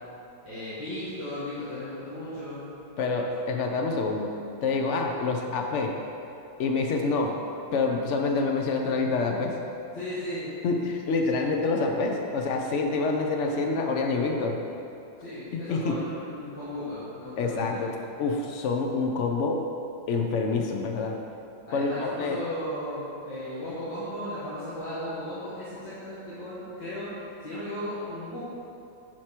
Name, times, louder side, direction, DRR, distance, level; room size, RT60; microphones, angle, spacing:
voice 1, 0.4-2.7 9.9-10.5 15.2-17.9 21.6-27.1 27.4-28.5, left 1 dB, 70° left, -13 dB, 2.4 m, -36 dB
voice 2, 3.0-6.0 6.6-7.4 7.7-9.6 10.6-14.6 15.5-16.0 17.4-17.9 18.2-19.6 20.1-21.2 21.7-22.4, left 3 dB, 85° left, 2 dB, 0.6 m, -27 dB
10.5 x 4.6 x 4.4 m, 2.8 s
omnidirectional pair, 2.0 m